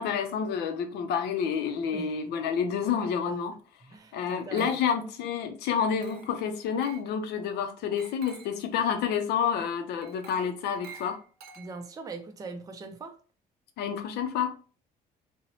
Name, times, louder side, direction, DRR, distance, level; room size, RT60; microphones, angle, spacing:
voice 1, 0.0-3.6 4.1-11.2 13.8-14.5, left 7 dB, 80° left, 0.5 m, -29 dB
voice 2, 3.9-4.8 11.6-13.1, right 3 dB, 20° right, 0.4 m, -41 dB
Glass, 4.3-5.1 6.0-6.4 6.8-7.1 8.0-8.6 10.0-12.0, right 6 dB, 75° right, 0.6 m, -50 dB
2.7 x 2.0 x 2.7 m
cardioid pair, 110°, 17 cm